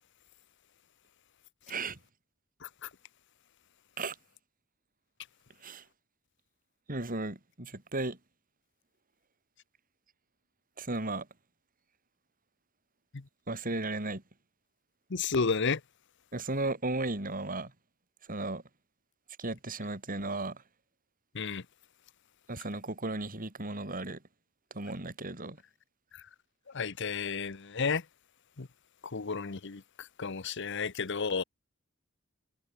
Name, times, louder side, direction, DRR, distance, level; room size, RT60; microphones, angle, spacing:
voice 1, 1.7-2.0 4.0-4.1 5.6-5.8 6.9-8.2 10.8-11.3 13.5-14.2 16.3-17.7 18.3-18.6 19.4-20.6 22.5-24.2 24.7-25.6, right 2 dB, 45° right, 4.2 m, -35 dB
voice 2, 15.1-15.8 21.3-21.6 26.1-26.2 26.7-28.0 28.6-28.7 29.0-31.4, left 5 dB, 60° left, 0.9 m, -32 dB
head